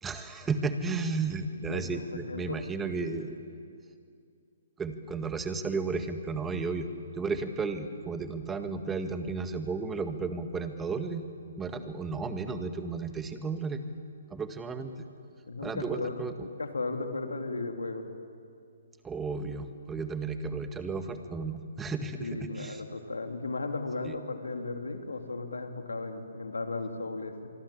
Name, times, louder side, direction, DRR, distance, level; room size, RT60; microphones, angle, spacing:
voice 1, 0.0-3.4 4.8-6.9 7.2-11.2 11.6-13.8 14.3-14.9 15.6-16.3 19.0-22.8 24.0-24.1, right 4 dB, 10° right, 8 dB, 1.9 m, -33 dB
voice 2, 1.7-2.7 3.0-3.2 15.5-18.1 22.1-27.5, left 3 dB, 90° left, 5 dB, 3.1 m, -36 dB
25.5 x 24.5 x 8.8 m, 2.4 s
hypercardioid pair, 140°, 0 cm